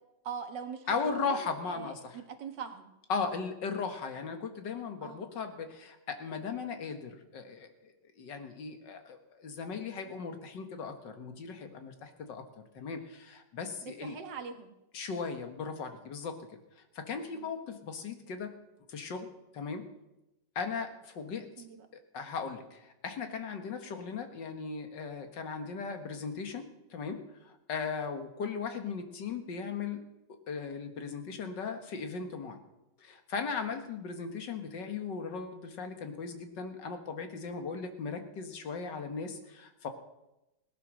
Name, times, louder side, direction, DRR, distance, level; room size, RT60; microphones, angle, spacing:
voice 1, 0.2-2.9 5.0-5.3 13.8-14.7 17.3-17.5 21.6-21.9, right 6 dB, 85° right, 6 dB, 2.1 m, -42 dB
voice 2, 0.9-2.2 3.1-14.2 14.9-16.4 16.8-18.5 18.9-19.3 19.5-19.9 20.6-21.5 21.9-30.0 30.5-32.6 33.0-39.9, left 5 dB, 85° left, 7 dB, 2.2 m, -37 dB
18.0 x 11.0 x 6.4 m, 0.95 s
omnidirectional pair, 1.9 m